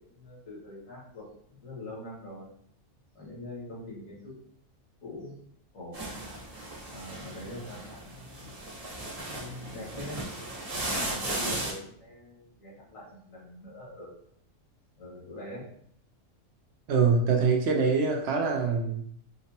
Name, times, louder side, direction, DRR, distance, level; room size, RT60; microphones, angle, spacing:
voice 1, 0.0-2.5 3.2-4.3 5.0-5.3 5.7-6.0 6.9-8.6 9.2-10.2 10.8-14.2 15.0-15.7, left 1 dB, 85° left, -5 dB, 1.8 m, -43 dB
sound 1, 5.9-11.7, right 2 dB, 80° right, 1.5 m, -36 dB
voice 2, 16.9-19.0, right 5 dB, 65° right, 2 dB, 0.8 m, -24 dB
5.1 x 2.0 x 2.7 m, 0.65 s
omnidirectional pair, 1.3 m